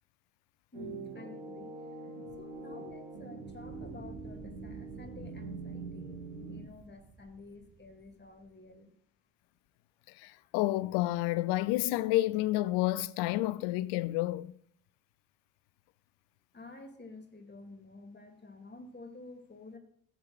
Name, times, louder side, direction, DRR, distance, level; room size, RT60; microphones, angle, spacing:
voice 1, 0.7-1.7 2.4-8.9 16.5-19.8, left 2 dB, 25° left, 2.3 m, -50 dB
sound 1, 0.7-6.6, right 3 dB, 85° right, 2.7 m, -44 dB
Fire, 3.5-8.6, right 5 dB, 30° right, 1.2 m, -53 dB
voice 2, 10.2-14.5, left 17 dB, 70° left, 0.5 m, -30 dB
15.0 x 8.1 x 2.4 m
hypercardioid pair, 55°, 42 cm